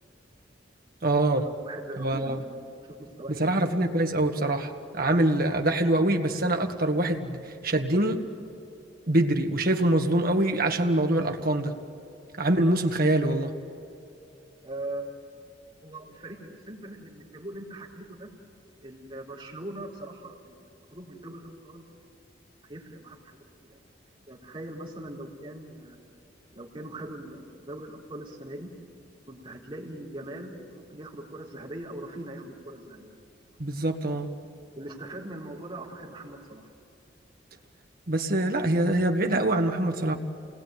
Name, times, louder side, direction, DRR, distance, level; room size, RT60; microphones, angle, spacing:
voice 1, 1.0-1.4 2.0-2.4 3.4-8.2 9.1-11.7 12.4-13.5 33.6-34.3 38.1-40.1, right 1 dB, 55° right, 4 dB, 1.8 m, -24 dB
voice 2, 1.6-2.4 3.0-3.7 14.6-15.0 15.8-18.3 18.8-20.6 20.9-21.8 22.6-23.4 23.7-23.8 24.3-26.0 26.5-28.7 29.3-33.1 34.7-36.7, right 1 dB, 30° right, -3 dB, 4.2 m, -41 dB
28.0 x 20.0 x 9.3 m, 2.8 s
head